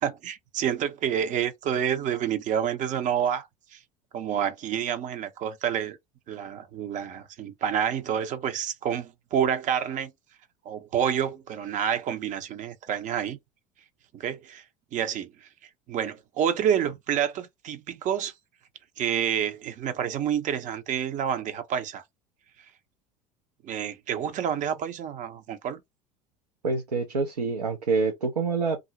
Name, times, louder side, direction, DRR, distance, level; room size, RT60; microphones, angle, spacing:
voice 1, 0.0-3.5 3.7-3.8 4.1-6.0 6.3-10.1 10.7-13.4 14.1-14.6 14.9-15.5 15.9-18.3 19.0-22.0 23.6-25.8, right 9 dB, 40° right, 0.6 m, -28 dB
voice 2, 26.6-28.8, right 4 dB, 85° right, 0.5 m, -26 dB
2.4 x 2.0 x 2.7 m
figure-of-eight pair, 70°, 20 cm